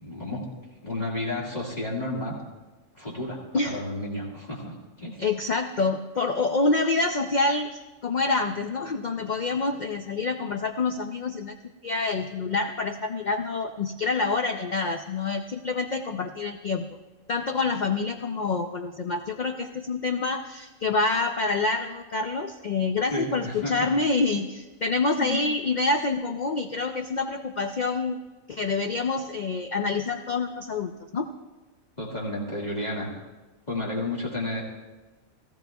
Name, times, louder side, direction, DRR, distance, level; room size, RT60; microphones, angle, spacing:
voice 1, 0.0-0.5 0.8-2.3 2.9-5.2 23.1-23.9 25.2-25.4 32.0-33.1 33.7-34.6, left 1 dB, 30° left, -4 dB, 2.1 m, -32 dB
voice 2, 5.2-11.6 11.8-16.9 17.3-28.2 28.5-31.3, left 3 dB, 65° left, 5 dB, 0.4 m, -27 dB
17.0 x 14.0 x 2.3 m, 1.2 s
omnidirectional pair, 1.5 m